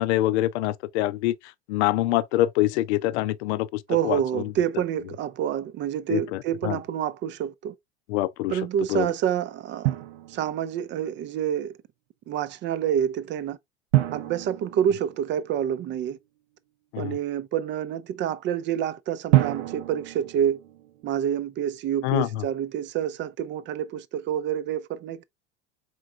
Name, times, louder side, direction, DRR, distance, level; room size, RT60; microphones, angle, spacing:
voice 1, 0.0-1.3 1.7-4.5 6.1-6.8 8.1-8.5 8.9-9.1 16.9-17.2 22.0-22.4, left 15 dB, 75° left, 0.5 m, -25 dB
voice 2, 3.9-7.7 8.5-10.0 10.3-11.7 12.3-13.6 14.1-16.2 17.0-20.6 21.0-25.2, right 9 dB, 35° right, 0.4 m, -28 dB
Drum, 9.9-10.9 13.9-15.8 19.3-21.3, right 16 dB, 80° right, 0.7 m, -27 dB
4.6 x 3.8 x 2.4 m
hypercardioid pair, 100°, 34 cm